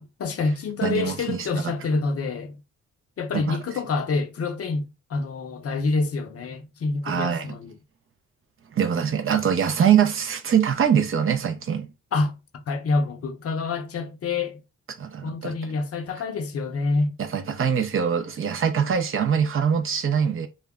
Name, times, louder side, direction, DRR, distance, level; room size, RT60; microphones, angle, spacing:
voice 1, 0.0-2.6 3.2-7.7 12.1-12.4 12.7-14.6 15.2-17.2, left 3 dB, 50° left, 0.6 m, -27 dB
voice 2, 0.8-1.7 3.4-3.6 7.0-7.5 8.7-11.9 15.0-15.5 17.3-20.5, right 8 dB, 45° right, 0.5 m, -23 dB
2.2 x 2.0 x 3.5 m
cardioid pair, 115°, 31 cm